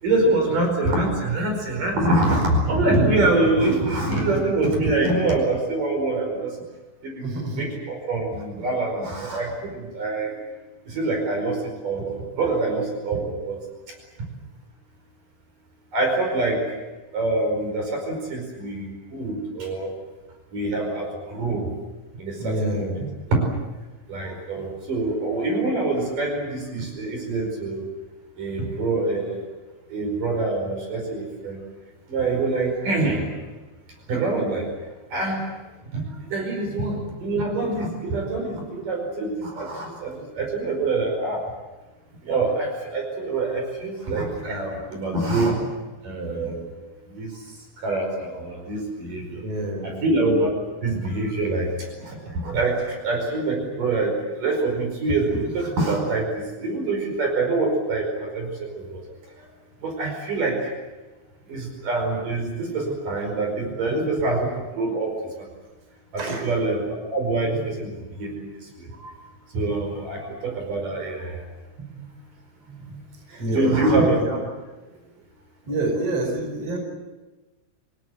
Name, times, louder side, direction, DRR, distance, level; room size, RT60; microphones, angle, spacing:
voice 1, 0.0-6.5 7.0-10.3 10.9-11.6 11.8-13.6 15.9-16.6 17.1-19.9 20.5-21.7 22.2-23.0 23.3-23.4 24.1-27.8 28.4-29.4 29.9-31.6 32.1-33.2 34.1-34.7 35.1-35.5 35.9-41.4 42.2-45.6 46.0-46.6 47.1-47.3 47.8-49.4 49.8-50.5 50.8-51.7 52.0-54.1 54.4-59.0 59.8-60.6 61.5-65.1 65.4-65.5 66.1-67.9 68.2-68.5 68.8-69.1 69.5-71.4 73.3-74.2, right 2 dB, 60° right, 2 dB, 6.6 m, -25 dB
voice 2, 7.2-7.6 22.4-23.2 36.8-37.0 49.2-50.0 63.9-64.0 66.2-66.4 67.6-67.7 71.9-72.1 72.7-73.0 73.4-74.4 75.6-76.8, right 2 dB, 40° right, 2 dB, 6.0 m, -28 dB
27.0 x 17.5 x 9.6 m, 1.2 s
omnidirectional pair, 4.3 m